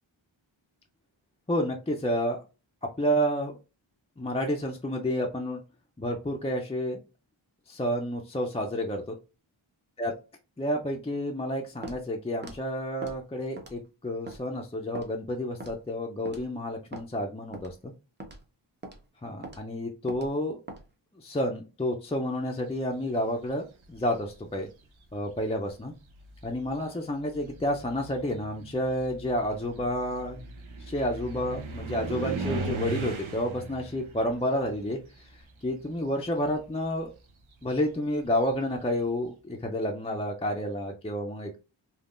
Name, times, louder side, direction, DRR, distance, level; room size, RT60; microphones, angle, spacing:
voice 1, 1.5-2.4 2.8-3.6 4.2-5.6 6.0-7.0 7.7-9.1 10.0-10.1 10.6-17.9 19.2-20.6 21.2-24.7 25.1-25.9 26.4-30.5 30.8-35.0 35.6-37.1 37.6-41.6, equal, 15° left, 1 dB, 0.4 m, -30 dB
Walk footsteps, 11.8-12.0 12.4-12.6 13.0-13.2 13.6-13.9 14.3-14.4 14.9-15.1 15.6-15.8 16.3-16.5 16.9-17.1 17.5-17.7 18.2-18.4 18.8-19.0 19.4-19.6 20.1-20.3 20.7-20.8, right 2 dB, 20° right, 0.7 m, -41 dB
sound 1, 23.8-24.4 25.4-25.5 26.0-35.9 36.2-38.9, right 4 dB, 75° right, 0.7 m, -39 dB
3.5 x 2.3 x 2.4 m, 0.31 s
wide cardioid pair, 90°, 48 cm